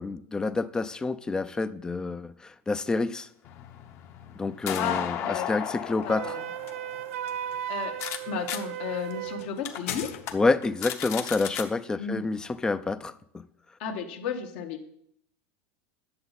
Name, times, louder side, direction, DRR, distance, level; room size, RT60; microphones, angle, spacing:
voice 1, 0.0-3.3 4.4-6.3 10.3-13.4, left 3 dB, 10° left, 14 dB, 0.3 m, -28 dB
sound 1, 3.4-8.2 8.5-8.6 9.1-9.2 9.6-9.8 10.2-10.3 10.6-11.6, left 9 dB, 40° left, 0.9 m, -35 dB
voice 2, 4.7-5.5 6.0-6.5 7.7-8.0 8.3-10.1 12.0-12.2 13.8-14.9, left 6 dB, 60° left, 5 dB, 1.1 m, -33 dB
sound 2, 5.6-10.7, left 9 dB, 85° left, 0.9 m, -44 dB
Wind instrument woodwind instrument, 6.1-9.5, right 11 dB, 80° right, 0.4 m, -35 dB
9.5 x 6.9 x 4.1 m, 0.70 s
supercardioid pair, 150°, 7 cm